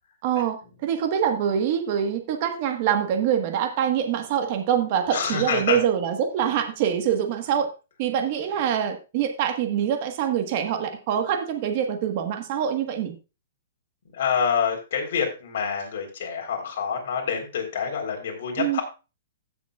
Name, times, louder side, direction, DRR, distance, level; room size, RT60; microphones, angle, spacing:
voice 1, 0.2-7.7 8.0-13.1 18.6-18.8, right 9 dB, 35° right, 6 dB, 1.4 m, -25 dB
voice 2, 5.1-5.8 14.2-18.8, left 6 dB, 55° left, 1 dB, 3.8 m, -27 dB
16.0 x 7.1 x 2.4 m, 0.30 s
hypercardioid pair, 165°, 0 cm